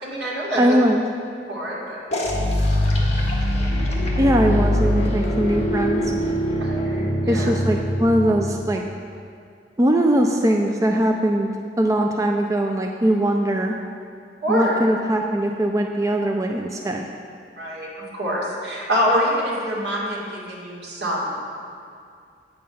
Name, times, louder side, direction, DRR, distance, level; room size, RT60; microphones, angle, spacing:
voice 1, 0.0-0.8 1.5-2.0 6.6-7.5 14.4-14.8 17.6-21.4, equal, 75° right, -4 dB, 2.3 m, -25 dB
voice 2, 0.6-1.0 4.2-6.1 7.3-8.8 9.8-11.5 11.8-13.7 14.5-17.1, right 1 dB, 20° right, 2 dB, 0.4 m, -20 dB
sound 1, 2.1-8.7, equal, 40° left, 1.6 m, -22 dB
8.9 x 7.5 x 5.4 m, 2.3 s
head